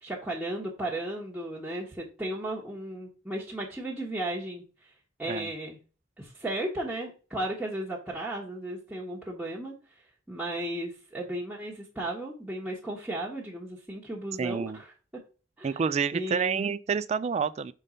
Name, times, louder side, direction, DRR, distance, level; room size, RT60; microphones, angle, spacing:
voice 1, 0.0-4.9 5.2-5.8 6.2-9.7 10.3-14.9 15.6-15.8 16.1-16.7, right 1 dB, 5° right, 1.3 m, -35 dB
voice 2, 14.4-14.8 15.6-17.7, right 6 dB, 35° right, 0.3 m, -28 dB
5.5 x 3.8 x 5.0 m
head